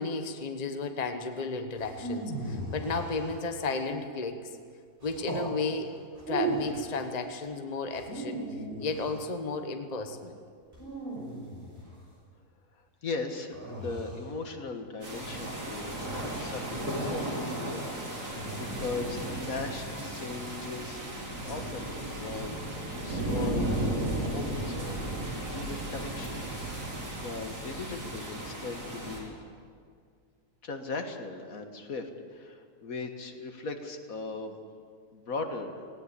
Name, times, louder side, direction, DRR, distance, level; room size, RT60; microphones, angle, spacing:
voice 1, 0.0-4.5 5.0-5.9 6.3-8.4 8.8-10.3, left 3 dB, 30° left, 6 dB, 1.1 m, -33 dB
sound 1, 1.8-3.8 5.0-5.5 6.2-6.8 7.9-9.2 10.7-11.9 13.5-14.3, right 2 dB, 35° right, 5.6 m, -36 dB
voice 2, 12.8-18.3 18.5-21.0 21.4-23.7 24.3-26.4 27.2-29.3 30.6-34.6 35.1-35.8, left 3 dB, 60° left, 5 dB, 1.9 m, -39 dB
sound 2, 15.0-29.2, right 1 dB, 85° right, 4.5 m, -34 dB
18.5 x 18.0 x 8.4 m, 2.1 s
omnidirectional pair, 1.7 m